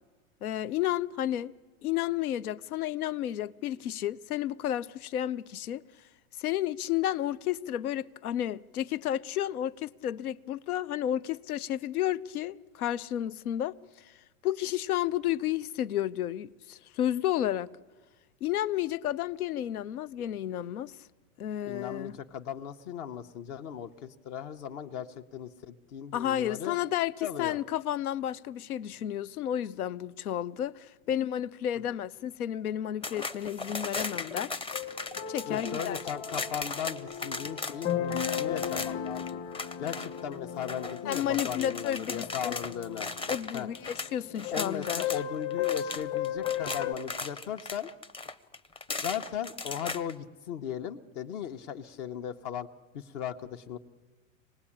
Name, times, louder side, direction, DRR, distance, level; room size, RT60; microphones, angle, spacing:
voice 1, 0.4-1.5 1.8-5.8 6.4-14.1 14.4-17.7 18.4-21.0 21.4-22.2 26.1-34.6 35.3-36.0 41.0-42.6 43.3-45.0, left 11 dB, 90° left, 0.7 m, -32 dB
voice 2, 21.6-26.8 27.2-27.6 35.5-39.4 39.8-43.1 43.5-43.7 44.5-47.9 48.9-52.7 52.9-53.8, left 9 dB, 55° left, 1.1 m, -37 dB
sound 1, 33.0-45.2 45.5-50.1, left 3 dB, 15° left, 0.6 m, -37 dB
sound 2, 34.7-46.9, left 9 dB, 35° left, 1.4 m, -36 dB
25.5 x 18.5 x 8.8 m
hypercardioid pair, 115°, 43 cm